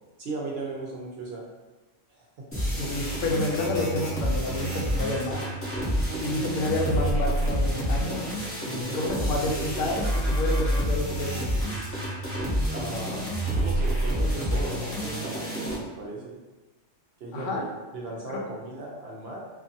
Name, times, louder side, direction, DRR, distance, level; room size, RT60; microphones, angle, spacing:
voice 1, 0.2-1.4 2.1-2.8 6.3-6.5 8.7-10.0 11.7-11.8 12.7-16.3 17.2-17.7 17.9-19.4, right 2 dB, 65° right, -2 dB, 0.7 m, -37 dB
sound 1, 2.5-15.7, right 1 dB, 15° left, 0.5 m, -28 dB
voice 2, 2.8-5.5 6.2-8.3 8.6-11.5 17.3-17.6 18.3-18.4, left 2 dB, 80° left, -1 dB, 0.9 m, -29 dB
2.5 x 2.5 x 2.6 m, 1.2 s
omnidirectional pair, 1.3 m